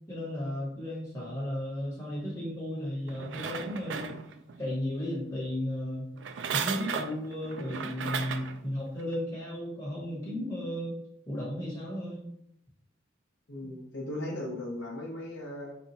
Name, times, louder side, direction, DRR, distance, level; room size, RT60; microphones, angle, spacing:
voice 1, 0.1-4.2 4.6-6.1 6.5-11.0 11.3-12.3, left 1 dB, 15° left, -6 dB, 1.1 m, -34 dB
sound 1, 3.1-4.6 6.2-8.6 9.1-9.2, right 6 dB, 65° right, 0.3 m, -35 dB
voice 2, 13.5-15.8, left 1 dB, 60° left, -2 dB, 0.8 m, -37 dB
4.3 x 2.2 x 3.9 m, 0.73 s
head